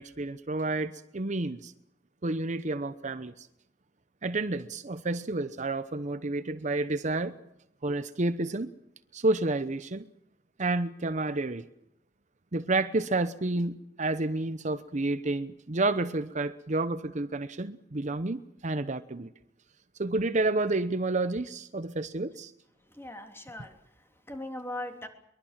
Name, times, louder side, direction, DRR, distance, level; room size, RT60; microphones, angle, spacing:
voice 1, 0.0-1.7 2.2-3.5 4.2-7.3 7.8-8.7 9.1-10.1 10.6-11.6 12.5-19.3 20.0-22.5, right 2 dB, 40° right, 0.9 m, -30 dB
voice 2, 22.9-25.1, left 1 dB, 15° left, 3.2 m, -40 dB
23.5 x 22.0 x 7.5 m
head